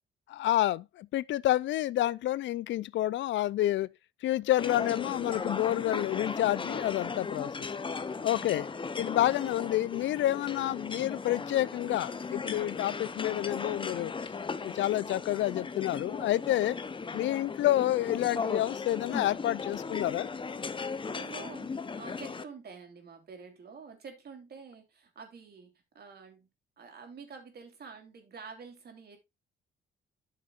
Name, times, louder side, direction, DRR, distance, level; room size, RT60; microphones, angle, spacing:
voice 1, 0.3-3.9 4.2-7.5 8.2-8.7 9.0-14.1 14.6-16.8 17.1-20.3, left 14 dB, 70° left, 0.4 m, -29 dB
sound 1, 4.6-22.4, left 5 dB, 25° left, 0.8 m, -37 dB
voice 2, 8.0-8.9 21.0-26.5 26.8-29.2, right 5 dB, 55° right, 3.1 m, -48 dB
12.5 x 6.6 x 2.4 m
cardioid pair, 90°, 20 cm